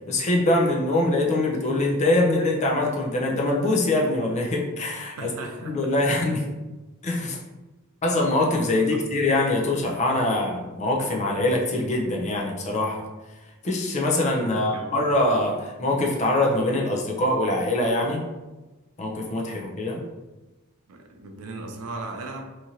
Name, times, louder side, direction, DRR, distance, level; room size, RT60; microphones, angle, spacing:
voice 1, 0.1-5.3 5.6-6.4 7.0-7.4 8.0-13.0 13.6-18.2 19.0-20.0, left 2 dB, 30° left, -1 dB, 0.4 m, -23 dB
voice 2, 5.2-6.2 8.8-9.0 14.4-15.0 20.9-22.4, right 2 dB, 80° right, 3 dB, 0.4 m, -38 dB
2.8 x 2.5 x 2.7 m, 1.1 s
head